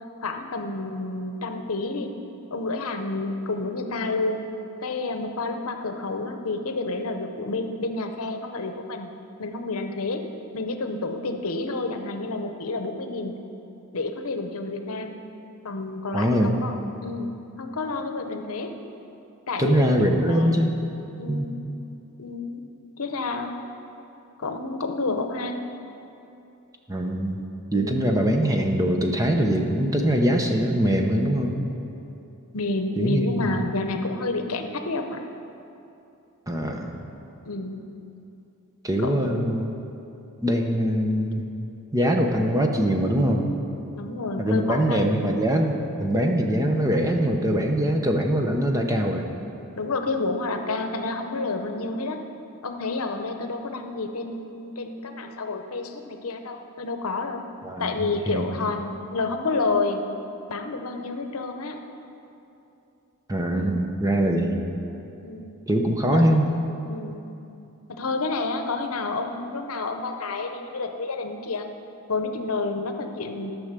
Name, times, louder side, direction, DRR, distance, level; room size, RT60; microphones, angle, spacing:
voice 1, 0.2-2.1 2.5-4.4 4.8-9.1 9.4-10.2 10.5-13.4 13.9-15.2 15.6-17.3 17.6-18.7 19.5-20.8 21.2-21.6 22.2-22.6 23.0-23.5 24.4-25.7 27.7-28.1 32.5-35.2 37.5-37.9 39.0-39.6 44.0-45.2 49.8-52.2 52.6-57.4 57.8-60.0 60.5-61.8 63.5-63.8 64.4-64.6 65.2-65.5 66.0-66.2 66.9-67.3 67.9-71.7 72.1-73.5, left 3 dB, 75° left, 6 dB, 0.8 m, -29 dB
voice 2, 16.1-16.7 19.6-20.8 21.3-21.5 26.9-27.4 27.7-31.6 33.0-33.4 36.5-36.9 38.8-39.6 40.4-41.4 41.9-43.5 44.4-49.2 57.6-58.7 63.3-64.6 65.7-66.5, equal, 15° right, 3 dB, 0.8 m, -23 dB
13.0 x 6.3 x 6.7 m, 2.8 s
head